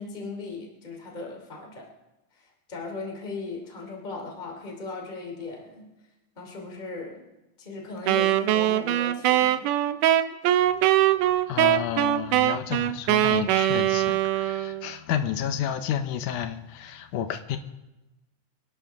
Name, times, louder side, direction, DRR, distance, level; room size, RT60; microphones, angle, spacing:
voice 1, 0.0-1.9 2.3-5.8 6.4-7.2 7.6-9.6, left 3 dB, 15° left, 2.6 m, -37 dB
Wind instrument woodwind instrument, 8.1-14.9, right 13 dB, 85° right, 2.2 m, -22 dB
voice 2, 11.5-17.6, left 10 dB, 80° left, 2.4 m, -31 dB
27.0 x 11.0 x 3.6 m
omnidirectional pair, 3.6 m